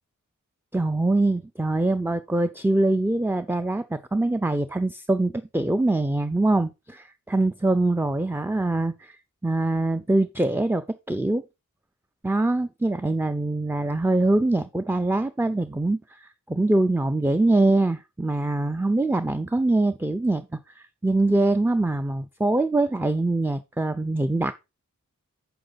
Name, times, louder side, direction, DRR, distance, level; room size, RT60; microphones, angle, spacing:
voice 1, 0.7-9.2 9.4-11.4 12.2-24.5, right 2 dB, 5° right, 0.6 m, -23 dB
7.9 x 6.2 x 4.0 m
cardioid pair, 40°, 33 cm